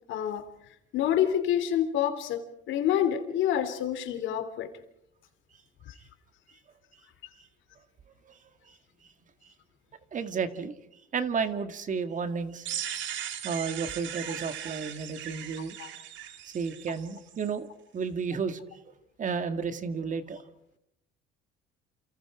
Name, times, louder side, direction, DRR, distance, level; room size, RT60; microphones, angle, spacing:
voice 1, 0.1-0.5 0.9-4.7 5.9-6.0 15.8-15.9, left 10 dB, 70° left, 9 dB, 3.3 m, -27 dB
voice 2, 10.1-10.7 11.1-12.7 13.4-15.8 16.4-17.7 17.9-18.6 19.2-20.4, right 5 dB, 40° right, 9 dB, 2.1 m, -32 dB
sound 1, 12.6-17.5, right 11 dB, 65° right, 3.0 m, -38 dB
29.0 x 28.5 x 5.0 m, 0.77 s
cardioid pair, 120°, 21 cm